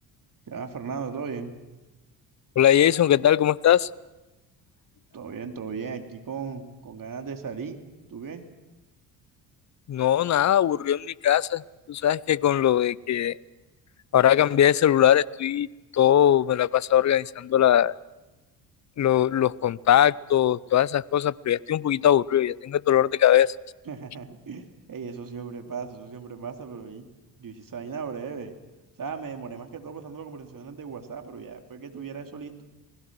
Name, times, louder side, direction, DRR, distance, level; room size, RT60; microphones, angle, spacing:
voice 1, 0.5-1.6 5.1-7.8 8.1-8.5 23.8-27.1 27.4-28.5 29.0-32.6, right 5 dB, 40° right, 5 dB, 3.2 m, -37 dB
voice 2, 2.6-3.9 9.9-11.6 11.9-13.4 14.1-15.7 15.9-17.9 19.0-23.5, left 10 dB, 35° left, 23 dB, 0.7 m, -21 dB
28.5 x 20.0 x 6.2 m, 1.1 s
hypercardioid pair, 50°, 50 cm